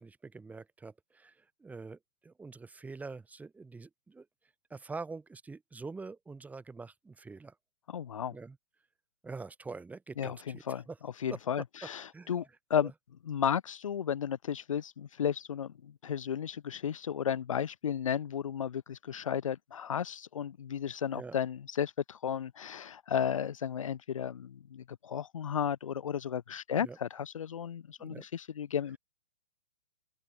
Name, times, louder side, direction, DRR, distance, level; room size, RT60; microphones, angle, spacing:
voice 1, 0.0-4.3 4.7-7.6 8.3-8.6 9.2-11.0 11.3-11.4 12.1-12.4 12.8-12.9 21.1-21.4 26.7-27.0 28.0-28.3, right 4 dB, 10° right, 5.2 m, -45 dB
voice 2, 7.9-8.3 10.2-10.8 11.2-12.9 13.3-29.0, left 8 dB, 70° left, 1.4 m, -34 dB
open air
figure-of-eight pair, 120°, 18 cm